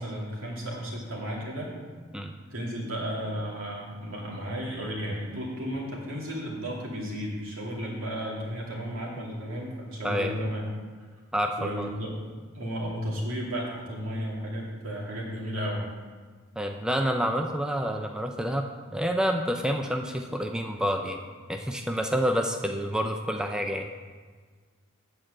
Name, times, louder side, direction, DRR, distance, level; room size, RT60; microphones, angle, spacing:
voice 1, 0.0-1.7 2.5-10.6 11.6-12.1 12.5-15.9, equal, 75° right, -3 dB, 2.4 m, -33 dB
voice 2, 10.0-10.4 11.3-11.9 16.6-18.6 18.9-21.2 21.5-23.9, equal, 5° right, 3 dB, 0.4 m, -28 dB
8.9 x 4.6 x 7.4 m, 1.5 s
head